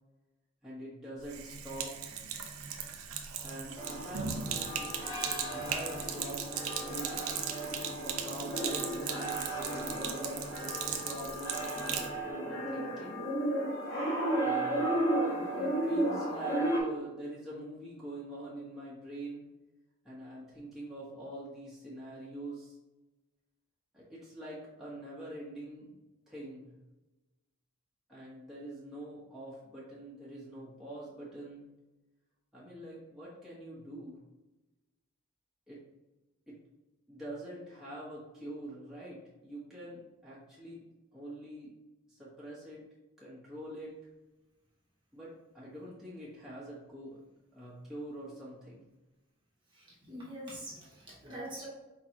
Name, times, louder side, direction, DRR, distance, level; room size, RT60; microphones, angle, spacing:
voice 1, 0.6-2.1 3.4-4.4 5.3-7.2 8.0-13.3 14.4-14.9 15.2-19.4 20.0-22.8 23.9-25.9 26.3-26.8 28.1-31.7 32.5-34.2 35.7-35.8 36.5-36.6 37.1-40.8 41.1-41.7 42.1-42.8 43.2-44.0 45.1-47.2 47.5-48.8, right 1 dB, ahead, -9 dB, 1.2 m, -45 dB
Sink (filling or washing), 1.2-12.1, right 7 dB, 90° right, 0.6 m, -38 dB
sound 1, 3.8-16.8, right 1 dB, 60° left, 1.5 m, -34 dB
voice 2, 50.1-51.7, equal, 20° right, -6 dB, 1.2 m, -43 dB
4.7 x 3.8 x 2.9 m, 1.1 s
head